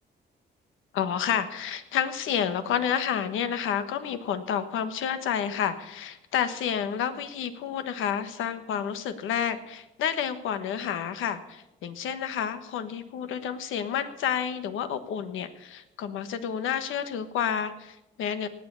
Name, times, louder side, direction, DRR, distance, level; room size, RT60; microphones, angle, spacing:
voice 1, 0.9-18.5, left 8 dB, 85° left, 10 dB, 1.3 m, -30 dB
18.5 x 7.8 x 6.9 m, 0.93 s
cardioid pair, 90°, 20 cm